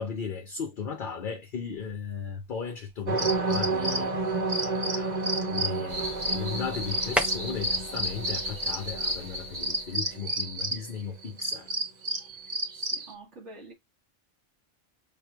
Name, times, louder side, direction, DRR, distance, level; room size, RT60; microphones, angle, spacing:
voice 1, 0.0-11.7, left 6 dB, 50° left, 0.7 m, -36 dB
sound 1, 1.6-9.5, equal, ahead, 0.5 m, -40 dB
sound 2, 3.1-10.9 11.2-13.1, right 2 dB, 35° right, 1.2 m, -30 dB
sound 3, 5.9-10.1, left 1 dB, 90° right, 2.3 m, -37 dB
voice 2, 12.5-13.7, right 2 dB, 65° right, 1.5 m, -48 dB
7.0 x 3.0 x 2.3 m
omnidirectional pair, 1.3 m